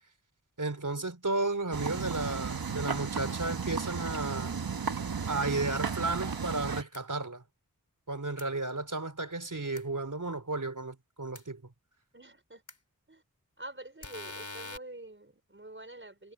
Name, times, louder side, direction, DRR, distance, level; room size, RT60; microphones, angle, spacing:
voice 1, 0.6-4.6 5.3-7.4 8.1-11.6, right 2 dB, 60° right, 3.8 m, -33 dB
sound 1, 1.7-6.8, right 5 dB, 90° right, 1.2 m, -34 dB
sound 2, 6.9-7.0 8.4-8.5 9.8-9.9 11.4-11.5 12.7-12.8 14.0-14.8, left 3 dB, 55° left, 4.0 m, -42 dB
voice 2, 12.1-12.6 13.1-13.2 13.6-16.3, right 2 dB, 35° right, 5.1 m, -46 dB
wide cardioid pair, 60°, 35 cm